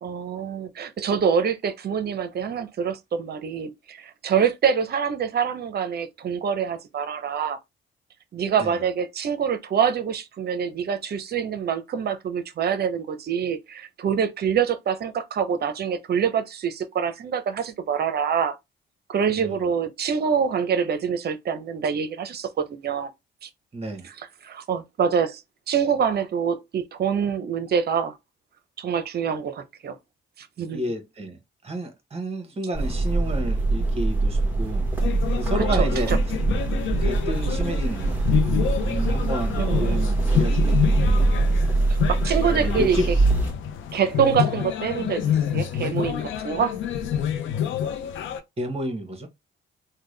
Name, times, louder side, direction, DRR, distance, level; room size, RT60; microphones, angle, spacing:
voice 1, 0.0-7.6 8.3-18.6 19.1-23.1 23.4-23.5 24.0-25.4 25.7-28.1 28.8-30.0 30.4-30.8 35.6-36.2 39.6-40.1 42.1-43.2 43.9-46.8, right 7 dB, 55° right, 0.7 m, -25 dB
voice 2, 23.7-24.1 30.7-31.4 31.6-34.9 35.3-36.1 37.0-41.3 42.5-43.1 48.6-49.3, equal, 30° right, 1.3 m, -31 dB
sound 1, 32.7-43.5, right 2 dB, 10° right, 1.3 m, -23 dB
sound 2, 35.0-48.4, left 9 dB, 80° left, 0.6 m, -28 dB
3.6 x 2.2 x 3.2 m
cardioid pair, 90°, 20 cm